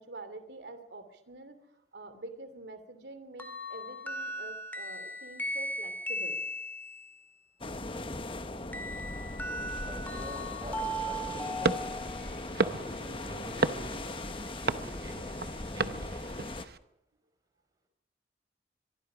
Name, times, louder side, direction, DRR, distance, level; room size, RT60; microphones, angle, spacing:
voice 1, 0.0-1.7 1.9-6.4 9.6-9.7, right 2 dB, 80° right, 9 dB, 2.8 m, -46 dB
sound 1, 3.4-7.1 8.7-12.5, equal, 10° left, 1.9 m, -37 dB
sound 2, 7.6-16.7, left 2 dB, 30° left, 1.0 m, -39 dB
voice 2, 8.8-9.4 9.9-11.8 12.6-14.0 14.5-15.2 15.7-16.1, right 1 dB, 20° right, 5 dB, 5.0 m, -46 dB
sound 3, 11.6-16.8, right 3 dB, 60° right, 0.9 m, -34 dB
24.0 x 23.5 x 5.0 m, 0.80 s
head